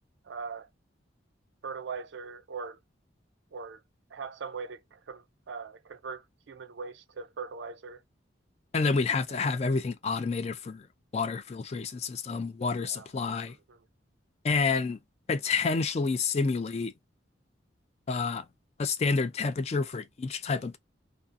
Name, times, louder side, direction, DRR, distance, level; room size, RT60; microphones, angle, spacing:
voice 1, 0.2-0.7 1.6-2.8 3.5-3.8 4.1-8.0 9.3-9.4 12.8-13.1 13.5-13.8, right 5 dB, 70° right, 0.4 m, -41 dB
voice 2, 8.7-10.8 11.1-13.5 14.4-15.0 15.3-16.9 18.1-18.4 18.8-20.8, left 4 dB, 35° left, 0.3 m, -29 dB
2.5 x 2.4 x 2.5 m
head